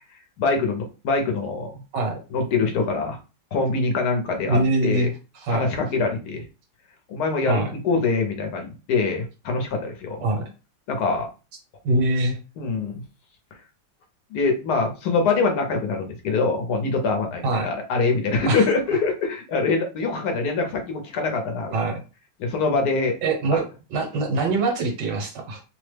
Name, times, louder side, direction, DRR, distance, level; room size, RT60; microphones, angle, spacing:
voice 1, 0.4-1.8 2.3-3.2 3.5-5.1 5.5-6.4 7.1-10.3 10.9-11.3 12.6-13.0 14.3-21.8 22.4-23.1 23.5-23.6, left 4 dB, 70° left, 3 dB, 1.1 m, -24 dB
voice 2, 4.5-5.1 5.3-5.7 7.5-7.7 10.2-10.4 11.8-12.4 17.4-17.7 18.5-18.6 21.7-22.0 23.2-23.6 23.9-25.6, right 2 dB, 75° right, 2 dB, 1.6 m, -23 dB
3.3 x 2.0 x 3.2 m, 0.31 s
omnidirectional pair, 1.9 m